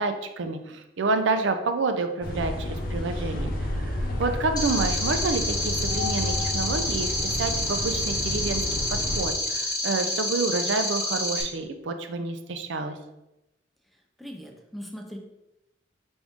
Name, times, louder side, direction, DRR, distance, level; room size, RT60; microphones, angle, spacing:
voice 1, 0.0-3.9 4.2-7.1 7.4-8.6 8.9-13.0, right 3 dB, 85° right, 7 dB, 0.5 m, -28 dB
sound 1, 2.2-9.3, left 1 dB, 55° left, 0.7 m, -31 dB
sound 2, 4.6-11.4, left 1 dB, 20° left, 0.7 m, -28 dB
voice 2, 14.2-15.2, equal, ahead, 1 dB, 0.4 m, -39 dB
4.8 x 2.6 x 3.5 m, 0.92 s
head